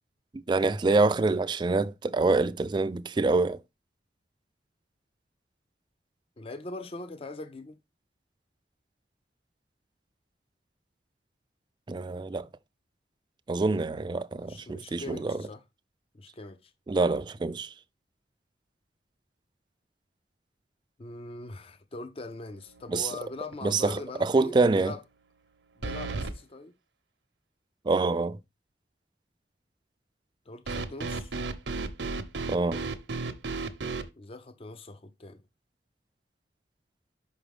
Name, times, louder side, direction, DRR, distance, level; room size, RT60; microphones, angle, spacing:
voice 1, 0.3-3.6 11.9-12.5 13.5-15.5 16.9-17.7 22.9-23.2 23.6-24.9 27.9-28.4 32.5-32.8, right 3 dB, 25° right, 0.3 m, -26 dB
voice 2, 6.4-7.8 14.4-15.6 16.1-16.7 21.0-25.0 25.8-26.7 30.5-31.3 34.2-35.4, left 2 dB, 30° left, 0.5 m, -42 dB
sound 1, 22.7-23.2 23.5-23.6 25.8-26.4 30.7-34.1, right 3 dB, 75° right, 0.7 m, -33 dB
5.8 x 4.9 x 3.4 m
head